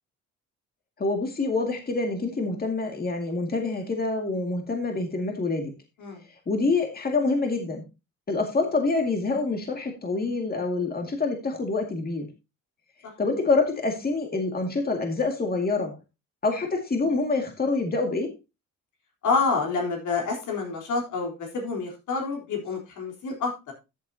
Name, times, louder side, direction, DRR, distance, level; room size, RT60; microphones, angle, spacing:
voice 1, 1.0-5.7 6.5-7.8 8.3-12.3 13.2-15.9 16.4-18.3, left 3 dB, 30° left, 3 dB, 2.2 m, -26 dB
voice 2, 19.2-23.5, left 4 dB, 80° left, 0 dB, 3.8 m, -28 dB
13.5 x 7.3 x 2.8 m, 0.26 s
cardioid pair, 90°, 30 cm